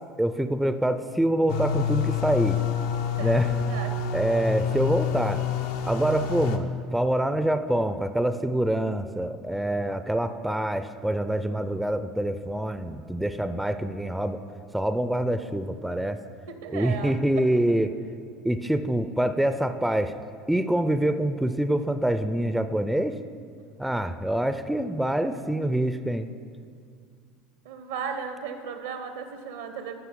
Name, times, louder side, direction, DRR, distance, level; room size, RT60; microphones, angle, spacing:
voice 1, 0.2-2.6 3.2-3.5 4.1-5.4 5.8-14.4 14.7-16.2 16.7-17.9 18.4-20.1 20.5-23.2 23.8-26.3, right 1 dB, 5° right, 10 dB, 0.4 m, -25 dB
sound 1, 1.5-6.6, left 6 dB, 65° left, 0.5 m, -27 dB
voice 2, 3.2-4.0 16.1-16.2 16.5-17.4 27.6-29.9, right 6 dB, 70° right, 8 dB, 0.7 m, -36 dB
13.5 x 5.6 x 3.7 m, 2.2 s
figure-of-eight pair, 70°, 0 cm